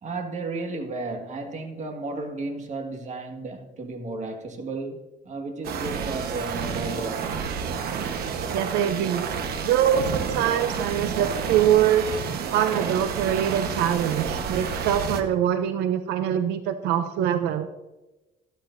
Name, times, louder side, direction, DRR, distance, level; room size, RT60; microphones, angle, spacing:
voice 1, 0.0-7.5, right 3 dB, 45° right, 1.8 m, -33 dB
sound 1, 5.6-15.2, right 6 dB, 65° right, 1.2 m, -30 dB
voice 2, 8.5-9.3 9.6-12.1 12.5-17.7, right 10 dB, 85° right, 0.6 m, -24 dB
12.5 x 12.5 x 2.6 m
cardioid pair, 110°, 17 cm